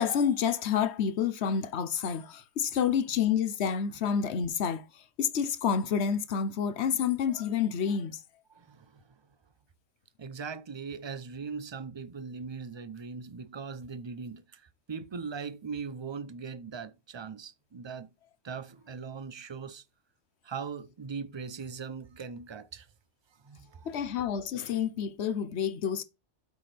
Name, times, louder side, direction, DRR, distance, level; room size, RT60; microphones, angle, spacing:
voice 1, 0.0-8.2 23.8-26.0, left 7 dB, 65° left, 1.0 m, -29 dB
voice 2, 8.5-9.0 10.2-18.1 18.4-19.8 20.4-22.9 23.4-23.9, right 5 dB, 35° right, 0.5 m, -40 dB
8.4 x 6.0 x 3.3 m
omnidirectional pair, 1.3 m